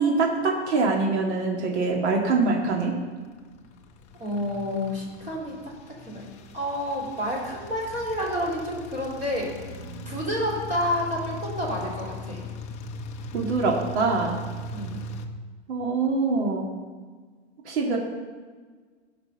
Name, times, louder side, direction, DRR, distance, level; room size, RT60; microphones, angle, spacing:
voice 1, 0.0-2.9 13.3-14.4 15.7-16.6 17.7-18.0, right 3 dB, 80° right, -1 dB, 2.3 m, -24 dB
sound 1, 3.3-15.3, left 1 dB, 20° left, 0.6 m, -39 dB
voice 2, 4.2-5.7 6.0-6.3 6.5-9.5 10.1-12.4 14.7-15.0, equal, 20° right, -4 dB, 3.5 m, -29 dB
17.0 x 5.9 x 5.5 m, 1.5 s
supercardioid pair, 160°, 34 cm